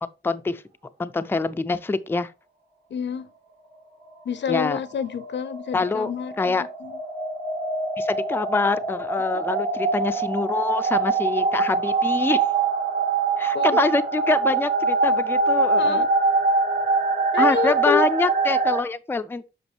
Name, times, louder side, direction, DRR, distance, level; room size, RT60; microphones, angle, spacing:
voice 1, 0.2-0.6 1.0-2.3 4.5-4.8 5.7-6.1 6.4-6.6 8.0-12.4 13.4-16.1 17.4-19.4, left 3 dB, 10° left, 0.4 m, -25 dB
voice 2, 2.9-3.3 4.2-7.0 9.3-9.5 13.5-13.8 15.8-16.1 17.3-18.0, left 7 dB, 90° left, 0.7 m, -28 dB
sound 1, 4.9-18.8, right 4 dB, 60° right, 2.2 m, -24 dB
8.0 x 6.0 x 3.1 m
wide cardioid pair, 170°, 18 cm